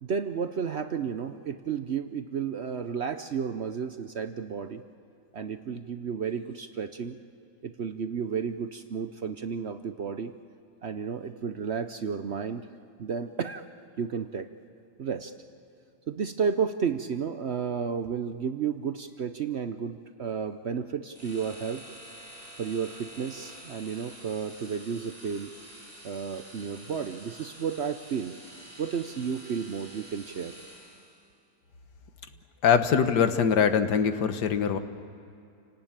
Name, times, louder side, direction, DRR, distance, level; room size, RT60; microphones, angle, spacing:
voice 1, 0.0-4.8 5.3-7.2 7.6-10.3 10.8-12.7 13.0-13.6 14.0-14.5 15.0-15.3 16.1-21.8 22.6-25.5 26.0-28.4 28.8-30.5, right 6 dB, 55° right, 9 dB, 0.8 m, -32 dB
sound 1, 21.1-31.2, right 1 dB, 40° right, 6.5 m, -48 dB
voice 2, 32.6-34.8, left 7 dB, 80° left, 9 dB, 1.7 m, -23 dB
29.0 x 18.5 x 8.9 m, 2.6 s
omnidirectional pair, 1.7 m